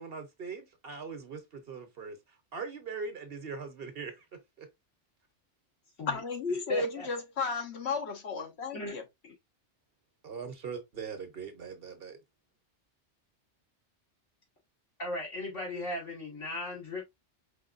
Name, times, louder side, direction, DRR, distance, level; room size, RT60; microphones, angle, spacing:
voice 1, 0.0-2.2 2.5-4.3 4.6-4.7 10.2-12.2, right 5 dB, 55° right, 1.2 m, -41 dB
voice 2, 6.1-9.0, left 4 dB, 65° left, 1.3 m, -33 dB
voice 3, 6.7-7.1 8.7-9.0 9.2-9.3 15.0-17.1, left 1 dB, 85° left, 3.0 m, -37 dB
5.0 x 3.7 x 2.5 m
omnidirectional pair, 1.2 m